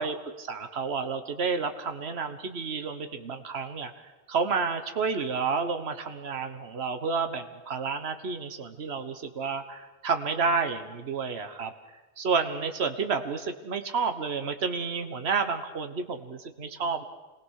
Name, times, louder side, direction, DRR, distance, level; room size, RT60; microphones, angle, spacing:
voice 1, 0.0-3.9 4.3-11.7 12.2-17.0, right 5 dB, 70° right, 8 dB, 1.5 m, -30 dB
26.0 x 19.5 x 6.5 m, 1.2 s
omnidirectional pair, 1.1 m